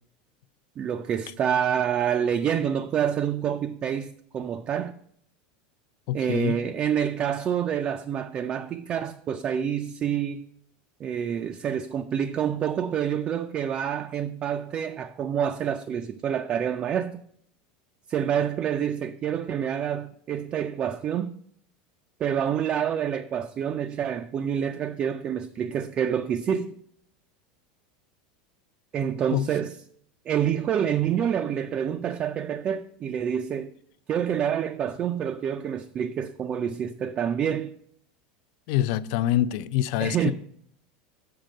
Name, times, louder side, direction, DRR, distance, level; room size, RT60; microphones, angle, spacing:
voice 1, 0.8-5.0 6.1-10.4 11.0-17.2 18.1-21.4 22.2-26.7 28.9-29.7 30.3-33.7 34.1-37.7 40.0-40.3, right 8 dB, 25° right, 0.3 m, -27 dB
voice 2, 6.1-6.6 29.3-29.5 38.7-40.3, left 12 dB, 50° left, 0.4 m, -25 dB
7.6 x 5.1 x 6.4 m
supercardioid pair, 165°, 4 cm